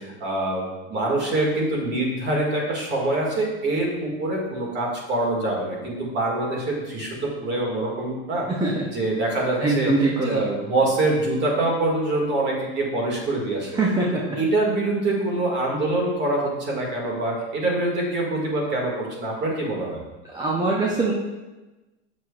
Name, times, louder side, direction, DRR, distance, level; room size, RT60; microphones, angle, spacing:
voice 1, 0.0-8.5 8.9-9.9 10.2-13.7 14.1-20.0, right 2 dB, 30° right, -2 dB, 1.9 m, -25 dB
voice 2, 9.6-10.4 13.7-14.1 20.3-21.1, right 3 dB, 10° right, -3 dB, 0.5 m, -22 dB
8.0 x 6.1 x 2.4 m, 1.1 s
supercardioid pair, 135°, 35 cm